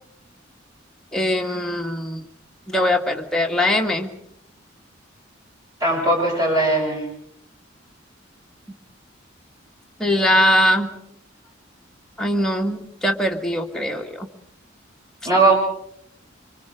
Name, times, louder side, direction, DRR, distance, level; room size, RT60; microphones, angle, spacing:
voice 1, 1.1-2.2 2.7-4.1 10.0-10.9 12.2-14.3, left 1 dB, 5° left, 1 dB, 2.0 m, -21 dB
voice 2, 5.8-7.0 15.2-15.5, right 2 dB, 20° right, -1 dB, 7.8 m, -18 dB
25.5 x 25.5 x 5.2 m, 0.72 s
head